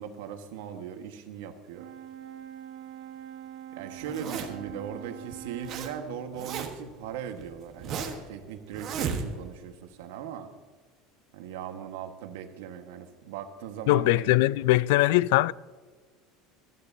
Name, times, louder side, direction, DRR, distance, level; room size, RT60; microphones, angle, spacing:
voice 1, 0.0-1.9 3.7-10.5 11.3-14.4, right 8 dB, 85° right, 1.4 m, -39 dB
Brass instrument, 1.8-6.2, right 11 dB, 65° right, 0.7 m, -44 dB
Zipper (clothing), 4.0-4.7 5.3-5.9 6.2-6.9 7.4-8.3 8.7-9.6, right 6 dB, 35° right, 1.3 m, -34 dB
voice 2, 13.9-15.5, left 17 dB, 70° left, 0.3 m, -21 dB
16.0 x 13.0 x 2.7 m
cardioid pair, 180°, 0 cm